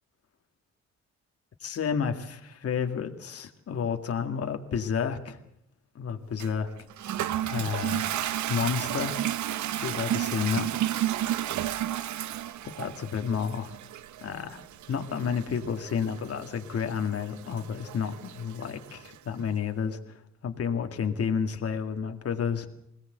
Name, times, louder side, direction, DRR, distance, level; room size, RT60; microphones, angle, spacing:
voice 1, 1.6-5.4 6.0-6.7 7.4-8.1 8.5-9.2 9.7-10.8 12.6-13.7 14.2-14.6 14.9-22.7, left 6 dB, 50° left, 5 dB, 2.1 m, -31 dB
Toilet flush, 6.4-19.2, right 12 dB, 70° right, 0.9 m, -33 dB
21.5 x 17.5 x 8.0 m, 0.78 s
cardioid pair, 90°, 30 cm